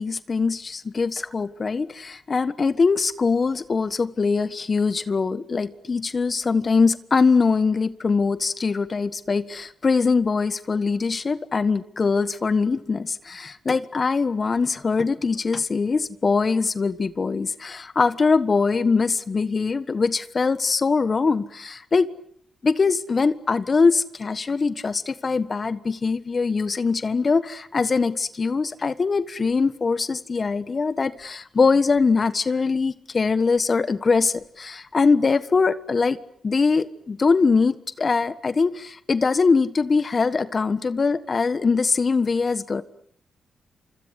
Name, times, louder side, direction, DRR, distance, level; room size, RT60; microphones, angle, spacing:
voice 1, 0.0-22.1 22.6-36.2 36.4-42.8, left 4 dB, 40° left, 14 dB, 1.4 m, -22 dB
28.0 x 25.5 x 8.3 m, 0.65 s
cardioid pair, 65°, 0 cm